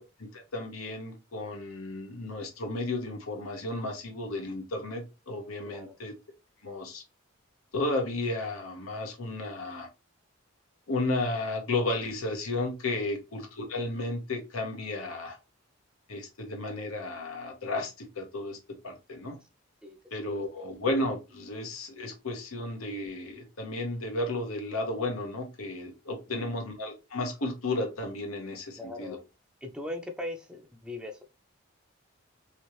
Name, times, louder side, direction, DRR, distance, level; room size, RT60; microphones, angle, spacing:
voice 1, 0.2-6.1 6.6-7.0 7.7-9.9 10.9-15.4 16.1-19.4 20.1-29.2, left 2 dB, 90° left, 1.1 m, -33 dB
voice 2, 5.7-6.0 12.9-13.1 19.8-20.4 26.3-26.4 28.8-29.2 29.6-31.2, left 1 dB, 5° right, 0.5 m, -40 dB
3.1 x 2.9 x 3.1 m
head